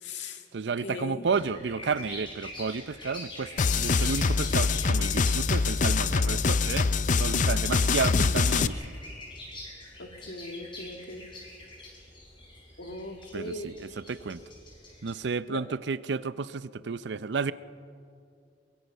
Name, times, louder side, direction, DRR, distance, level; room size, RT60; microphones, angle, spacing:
voice 1, 0.0-0.4 0.8-1.3 10.0-11.2 12.8-13.7 15.5-15.6, left 2 dB, 80° left, 4 dB, 2.0 m, -39 dB
voice 2, 0.5-3.5 3.8-6.9 7.2-8.8 13.3-14.4 15.0-17.5, right 5 dB, 70° right, 16 dB, 0.5 m, -31 dB
sound 1, 1.2-15.1, left 1 dB, 30° left, 5.9 m, -46 dB
sound 2, 3.6-8.7, left 4 dB, 45° left, 0.5 m, -24 dB
23.5 x 22.5 x 5.5 m, 2.5 s
head